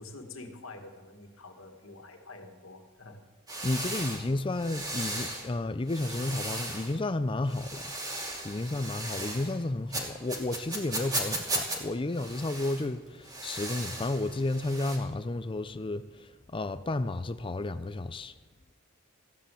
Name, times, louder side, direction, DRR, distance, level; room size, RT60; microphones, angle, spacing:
voice 1, 0.0-3.2 3.5-3.8, left 2 dB, 80° left, 2.0 m, -47 dB
sound 1, 3.5-5.5 5.9-7.0 7.5-9.6 9.9-11.8 12.1-12.9 13.2-15.0, right 2 dB, 20° right, 2.6 m, -36 dB
voice 2, 3.6-7.8 8.4-18.3, left 2 dB, 25° left, 0.5 m, -32 dB
15.5 x 10.0 x 7.7 m
head